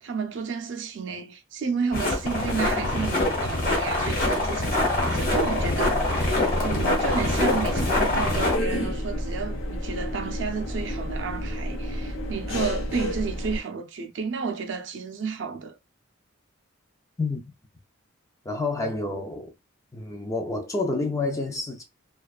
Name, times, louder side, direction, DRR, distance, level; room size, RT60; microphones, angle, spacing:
voice 1, 0.0-15.8, right 5 dB, 60° right, 0.4 m, -31 dB
sound 1, 1.9-8.6, left 2 dB, 40° left, 1.1 m, -24 dB
sound 2, 5.2-13.6, equal, 80° left, 0.7 m, -31 dB
voice 2, 18.5-19.5 19.9-21.8, left 3 dB, 15° left, 0.4 m, -28 dB
2.4 x 2.3 x 2.3 m
head